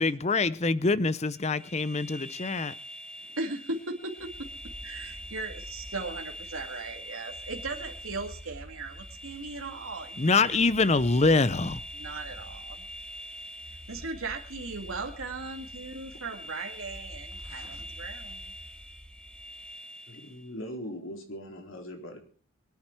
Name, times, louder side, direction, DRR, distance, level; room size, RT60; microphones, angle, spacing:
voice 1, 0.0-2.7 10.2-11.8, left 3 dB, 30° left, 0.6 m, -25 dB
sound 1, 1.3-20.5, equal, 5° left, 1.4 m, -45 dB
voice 2, 3.3-4.3 4.8-10.6 11.9-12.9 13.9-18.5, right 3 dB, 85° right, 2.1 m, -38 dB
sound 2, 4.2-19.7, equal, 40° right, 4.0 m, -49 dB
voice 3, 17.4-17.8 20.1-22.2, equal, 75° left, 3.8 m, -41 dB
25.0 x 9.5 x 4.5 m
head